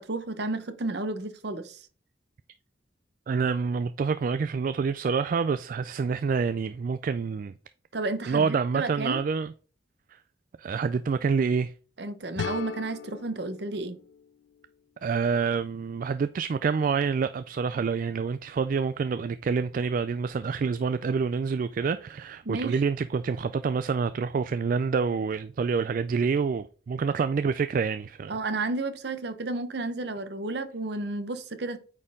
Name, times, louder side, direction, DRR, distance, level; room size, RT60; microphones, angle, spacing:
voice 1, 0.0-1.8 7.9-9.2 12.0-14.0 22.4-22.7 28.3-31.8, right 2 dB, 60° right, 0.9 m, -32 dB
voice 2, 3.3-7.5 8.3-9.5 10.1-10.2 10.6-11.7 15.0-28.3, right 5 dB, 45° right, 0.3 m, -27 dB
sound 1, 12.4-15.2, left 6 dB, 70° left, 0.3 m, -38 dB
8.9 x 4.4 x 3.6 m
head